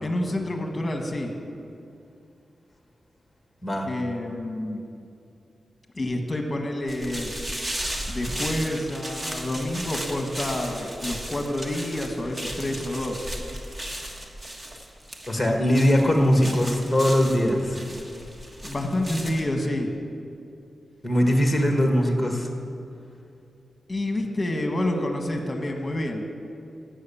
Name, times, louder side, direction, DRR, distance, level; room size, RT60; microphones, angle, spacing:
voice 1, 0.0-1.3 3.8-4.8 5.9-7.3 8.1-13.3 18.6-19.9 23.9-26.2, left 1 dB, 20° left, 3 dB, 1.5 m, -28 dB
sound 1, 6.9-19.4, right 1 dB, 25° right, 1.4 m, -35 dB
voice 2, 15.3-17.8 21.0-22.5, equal, 5° left, 2 dB, 1.5 m, -21 dB
12.5 x 7.6 x 8.7 m, 2.6 s
wide cardioid pair, 145°, 0 cm